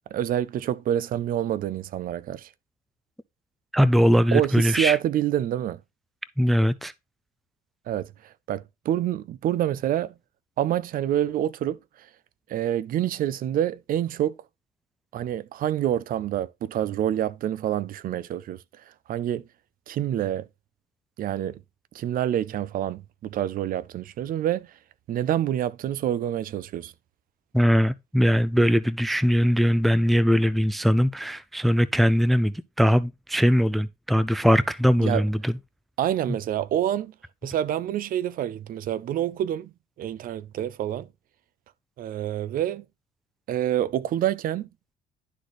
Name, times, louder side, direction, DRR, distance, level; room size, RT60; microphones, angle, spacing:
voice 1, 0.1-2.5 4.3-5.8 7.9-10.1 10.6-12.1 12.5-14.4 15.1-18.6 18.9-19.4 19.9-20.5 21.2-21.6 21.9-24.7 25.1-26.9 35.0-35.2 36.0-37.1 37.4-39.7 40.0-41.1 42.0-42.8 43.5-44.7, right 11 dB, 55° right, 0.5 m, -27 dB
voice 2, 3.7-5.0 6.4-6.9 27.5-35.5, equal, ahead, 0.4 m, -21 dB
11.5 x 4.0 x 3.1 m
cardioid pair, 110°, 17 cm